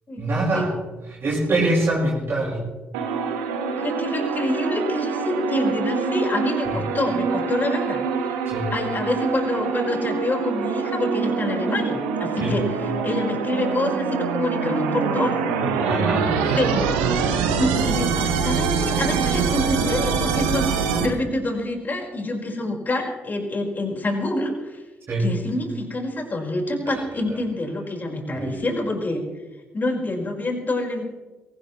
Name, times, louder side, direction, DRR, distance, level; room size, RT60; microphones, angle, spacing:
voice 1, 0.2-0.7 1.2-2.7 6.7-6.8 8.4-8.7 12.4-12.6 15.8-16.7 25.1-25.3 26.9-27.0 28.3-28.6, right 2 dB, 40° right, -4 dB, 5.4 m, -24 dB
sound 1, 2.9-21.1, right 5 dB, 70° right, 1.7 m, -24 dB
voice 2, 3.7-8.3 8.7-15.4 16.5-17.1 17.6-24.8 25.2-29.2 29.7-31.0, left 1 dB, 30° left, 1 dB, 4.9 m, -26 dB
22.5 x 17.5 x 3.2 m, 1.1 s
figure-of-eight pair, 45°, 6 cm